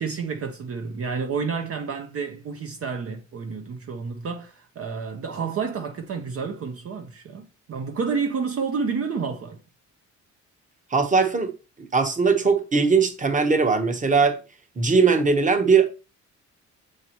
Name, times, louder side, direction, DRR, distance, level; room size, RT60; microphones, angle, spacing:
voice 1, 0.0-9.6, right 5 dB, 50° right, 0.8 m, -30 dB
voice 2, 10.9-11.5 11.9-14.4 14.8-15.9, right 4 dB, 25° right, 1.1 m, -20 dB
7.0 x 4.8 x 3.0 m
cardioid pair, 90°, 30 cm